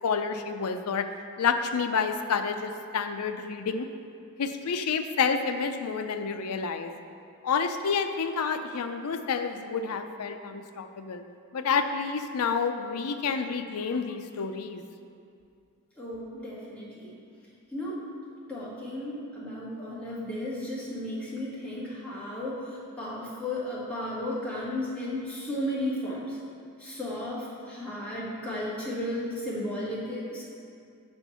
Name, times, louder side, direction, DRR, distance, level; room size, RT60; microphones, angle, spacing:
voice 1, 0.0-1.1 1.4-3.9 4.4-6.9 7.4-11.2 11.5-14.8, left 5 dB, 75° left, 8 dB, 0.5 m, -29 dB
voice 2, 16.0-17.1 17.7-18.0 18.5-26.4 26.8-30.4, left 1 dB, 5° left, -8 dB, 1.7 m, -34 dB
6.9 x 4.4 x 5.5 m, 2.4 s
head